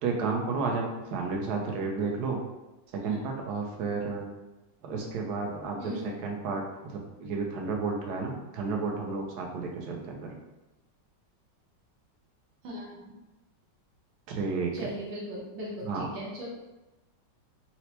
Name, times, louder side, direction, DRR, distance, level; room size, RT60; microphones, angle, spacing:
voice 1, 0.0-2.4 2.9-4.2 4.8-10.4 14.3-14.7 15.9-16.1, right 4 dB, 70° right, 0 dB, 1.1 m, -32 dB
voice 2, 5.8-6.1 12.6-13.1 14.7-16.5, equal, 90° right, -5 dB, 1.5 m, -38 dB
4.3 x 2.1 x 2.8 m, 1.0 s
omnidirectional pair, 1.9 m